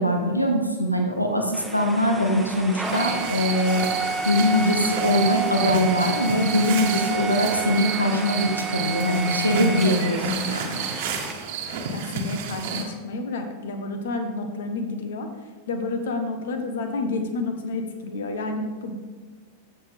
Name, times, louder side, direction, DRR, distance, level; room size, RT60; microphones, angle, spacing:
voice 1, 0.0-3.9 4.2-10.8, left 1 dB, 85° left, 3 dB, 1.0 m, -22 dB
sound 1, 1.5-11.3, right 4 dB, 5° right, 1.1 m, -30 dB
sound 2, 2.8-12.8, right 5 dB, 50° right, 1.4 m, -31 dB
voice 2, 11.9-18.9, left 3 dB, 60° left, 6 dB, 1.3 m, -30 dB
15.0 x 7.0 x 3.6 m, 1.5 s
figure-of-eight pair, 90°, 0 cm